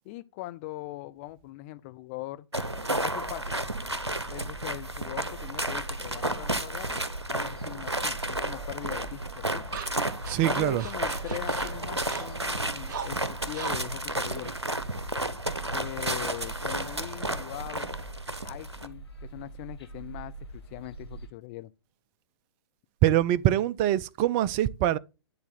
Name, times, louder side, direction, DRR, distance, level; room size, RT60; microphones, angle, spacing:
voice 1, 0.0-2.5 3.0-3.6 4.3-7.0 7.3-9.6 10.4-14.5 15.7-17.9 18.4-21.7, left 17 dB, 30° left, 0.5 m, -41 dB
sound 1, 2.5-18.9, right 1 dB, 90° right, 0.7 m, -32 dB
sound 2, 3.1-21.3, right 3 dB, 70° left, 2.9 m, -44 dB
sound 3, 8.9-15.4, right 7 dB, 45° right, 0.8 m, -43 dB
voice 2, 10.3-10.8 23.0-25.0, right 13 dB, 25° right, 0.3 m, -24 dB
9.8 x 4.0 x 3.8 m
figure-of-eight pair, 115°, 14 cm